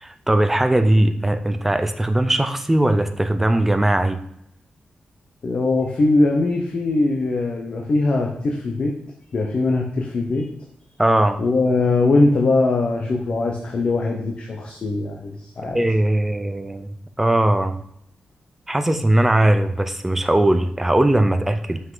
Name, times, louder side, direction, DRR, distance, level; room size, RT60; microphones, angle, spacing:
voice 1, 0.0-4.2 11.0-11.4 15.7-17.8 18.7-21.8, right 1 dB, 10° right, 8 dB, 0.4 m, -19 dB
voice 2, 5.4-8.9 9.3-10.5 11.4-15.8, left 2 dB, 45° left, 1 dB, 0.7 m, -21 dB
5.7 x 5.4 x 3.8 m, 0.73 s
wide cardioid pair, 175°, 3 cm